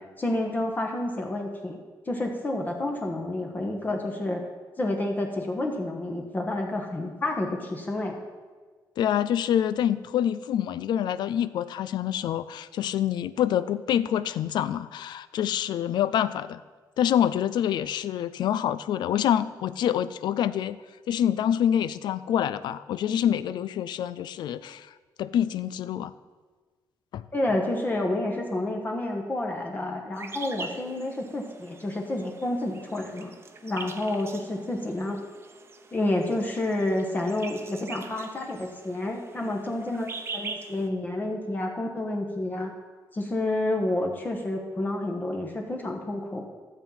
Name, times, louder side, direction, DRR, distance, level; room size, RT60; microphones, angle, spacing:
voice 1, 0.0-1.8 2.1-4.4 4.8-8.2 27.3-33.3 33.6-35.2 35.9-42.7 43.1-46.4, left 1 dB, 25° left, 2 dB, 1.2 m, -29 dB
voice 2, 9.0-16.6 17.0-20.8 21.1-24.9 25.2-26.1 27.1-27.2, left 10 dB, 85° left, 15 dB, 0.4 m, -26 dB
sound 1, 30.2-40.9, right 4 dB, 35° right, 0.9 m, -43 dB
13.0 x 7.3 x 5.6 m, 1.4 s
cardioid pair, 145°, 7 cm